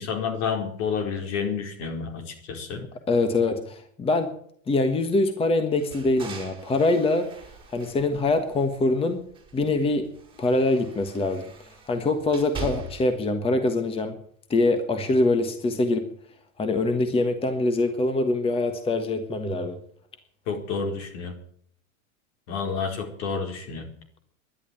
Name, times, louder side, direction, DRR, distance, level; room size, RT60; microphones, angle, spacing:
voice 1, 0.0-2.8 20.5-21.3 22.5-23.9, left 5 dB, 60° left, 4 dB, 4.6 m, -29 dB
voice 2, 3.1-4.4 4.7-7.3 7.7-9.2 9.5-10.1 10.4-11.4 11.9-14.2 14.5-16.1 16.6-19.8, left 2 dB, 15° left, 8 dB, 1.3 m, -24 dB
sound 1, 5.7-8.9 9.3-13.2, right 4 dB, 15° right, 6.1 m, -41 dB
12.0 x 11.0 x 9.4 m, 0.62 s
supercardioid pair, 145°, 40 cm